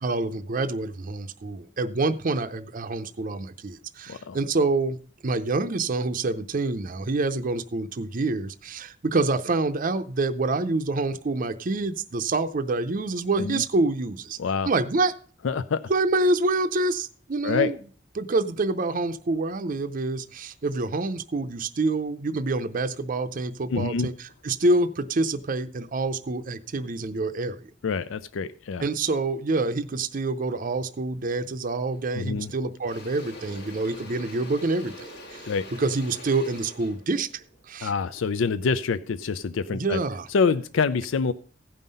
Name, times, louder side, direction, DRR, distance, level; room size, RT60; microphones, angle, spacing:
voice 1, 0.0-5.0 5.2-14.4 14.7-15.1 15.9-17.8 18.2-24.1 24.4-27.7 28.8-35.5 35.8-37.9 39.7-40.3, right 3 dB, 45° right, 8 dB, 0.6 m, -27 dB
voice 2, 4.1-4.4 13.4-13.6 14.4-14.7 15.4-15.9 17.4-17.7 23.7-24.1 27.8-28.9 32.1-32.5 35.4-35.7 37.8-40.0 40.3-41.3, left 5 dB, 85° left, 14 dB, 0.4 m, -26 dB
Engine / Drill, 31.9-32.1 32.5-38.6, equal, 60° left, 1.3 m, -44 dB
15.5 x 5.6 x 5.4 m, 0.44 s
head